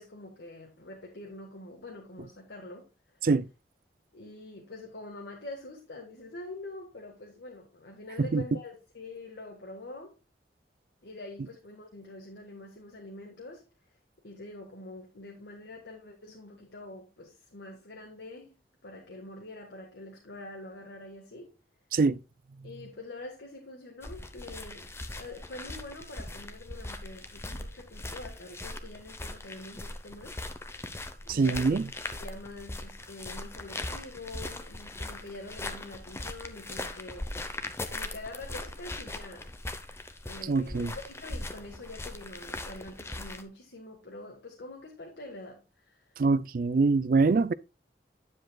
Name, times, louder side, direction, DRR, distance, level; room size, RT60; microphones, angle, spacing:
voice 1, 0.0-2.9 3.1-3.2 4.1-10.1 11.0-13.6 14.2-18.5 18.8-21.5 22.6-30.4 31.2-37.3 37.9-39.5 40.2-46.2, left 2 dB, 90° left, 1.6 m, -45 dB
sound 1, 24.0-43.4, left 2 dB, 15° left, 0.7 m, -40 dB
voice 2, 31.3-31.9 40.5-40.9 46.2-47.5, right 4 dB, 50° right, 0.4 m, -24 dB
9.8 x 7.6 x 2.3 m
head